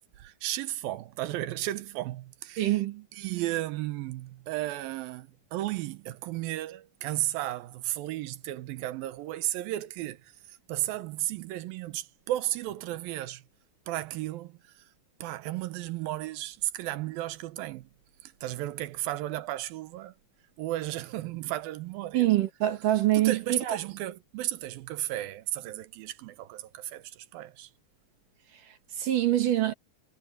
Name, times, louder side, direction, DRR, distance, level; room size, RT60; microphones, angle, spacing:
voice 1, 0.2-2.8 3.1-13.4 13.9-14.9 15.2-17.9 18.2-20.1 20.6-22.3 23.1-27.7, right 15 dB, 85° right, 2.7 m, -34 dB
voice 2, 2.6-3.0 22.1-23.8 28.5-29.7, right 14 dB, 70° right, 3.1 m, -25 dB
omnidirectional pair, 4.1 m